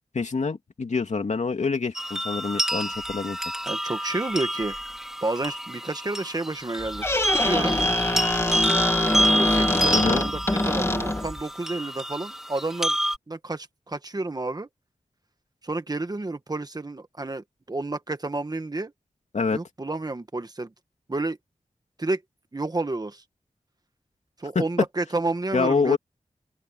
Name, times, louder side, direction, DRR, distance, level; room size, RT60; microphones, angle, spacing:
voice 1, 0.1-3.4 9.9-10.2 19.3-19.6 24.5-24.6 25.5-26.0, left 4 dB, 65° left, 2.6 m, -26 dB
sound 1, 2.0-13.2, equal, 5° right, 4.7 m, -28 dB
voice 2, 3.6-4.8 5.2-7.1 7.3-7.8 9.1-10.4 10.6-13.0 13.3-14.7 15.6-18.9 19.5-20.7 21.1-21.4 22.0-22.2 22.5-23.2 24.4-26.0, right 2 dB, 30° right, 1.4 m, -30 dB
Squeak, 6.8-11.4, left 1 dB, 20° left, 2.6 m, -24 dB
open air
wide cardioid pair, 85°, 13 cm